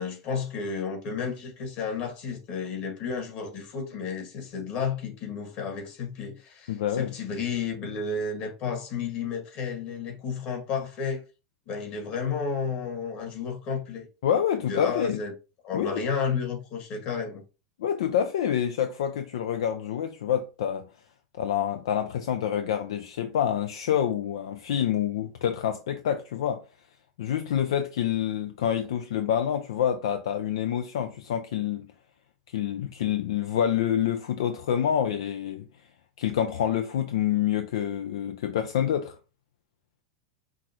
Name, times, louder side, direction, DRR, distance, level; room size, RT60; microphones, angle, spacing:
voice 1, 0.0-11.2 11.6-14.1 14.7-15.3 15.6-17.4, left 5 dB, 50° left, 1.8 m, -32 dB
voice 2, 6.7-7.1 14.2-15.2 15.7-16.0 17.8-20.8 21.4-26.6 27.2-31.9 32.5-35.6 36.2-39.2, left 9 dB, 75° left, 0.4 m, -27 dB
5.7 x 2.5 x 2.9 m
hypercardioid pair, 105°, 3 cm